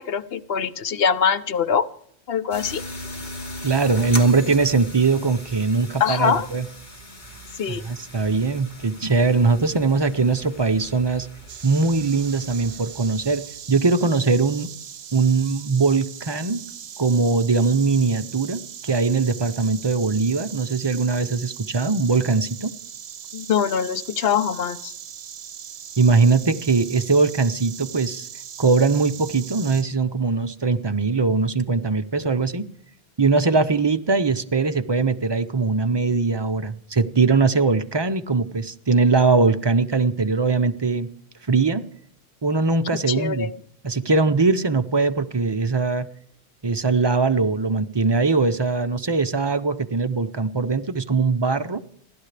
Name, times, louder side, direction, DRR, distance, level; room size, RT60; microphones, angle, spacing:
voice 1, 0.0-1.9 2.3-2.8 6.0-6.5 7.6-7.8 23.3-24.9 43.1-43.5, left 7 dB, 65° left, 13 dB, 1.0 m, -23 dB
sound 1, 2.5-13.6, left 1 dB, 45° left, 2.6 m, -39 dB
voice 2, 3.6-6.7 7.7-11.3 11.6-14.7 15.1-16.6 17.0-22.7 26.0-28.3 28.6-32.7 33.2-41.1 41.5-41.9 42.4-43.5 43.8-46.1 46.6-51.8, right 4 dB, 30° right, 9 dB, 0.6 m, -21 dB
Insect, 11.5-29.8, right 9 dB, 70° right, 1.0 m, -39 dB
30.0 x 11.5 x 3.3 m, 0.66 s
omnidirectional pair, 1.1 m